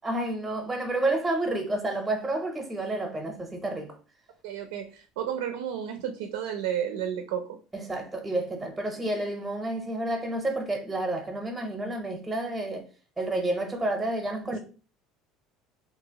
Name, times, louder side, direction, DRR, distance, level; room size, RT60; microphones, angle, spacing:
voice 1, 0.0-4.0 7.7-12.8 13.2-14.6, right 2 dB, 10° right, 0.6 m, -30 dB
voice 2, 4.4-7.5, right 9 dB, 90° right, 0.4 m, -32 dB
2.8 x 2.4 x 2.7 m
supercardioid pair, 115°, 0 cm